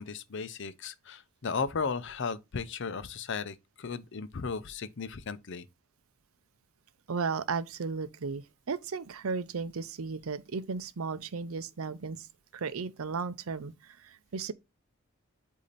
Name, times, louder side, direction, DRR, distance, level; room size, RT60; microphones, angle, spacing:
voice 1, 0.0-5.7, left 5 dB, 60° left, 0.6 m, -35 dB
voice 2, 7.1-12.3 12.5-14.5, right 5 dB, 80° right, 0.6 m, -35 dB
8.3 x 2.8 x 4.0 m
head